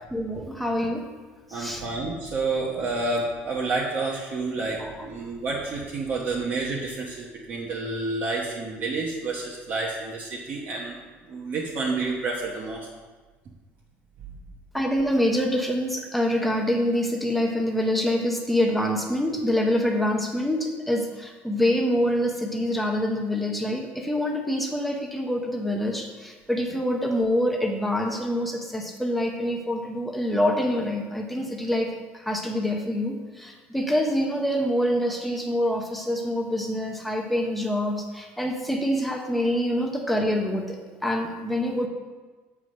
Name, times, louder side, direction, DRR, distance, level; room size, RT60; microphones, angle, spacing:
voice 1, 0.1-1.1 1.5-1.8 4.8-5.1 14.7-41.9, left 1 dB, ahead, 1 dB, 0.8 m, -26 dB
voice 2, 1.5-11.0 11.3-12.9, right 3 dB, 40° right, -3 dB, 1.0 m, -29 dB
7.6 x 4.8 x 6.4 m, 1.3 s
cardioid pair, 165°, 5 cm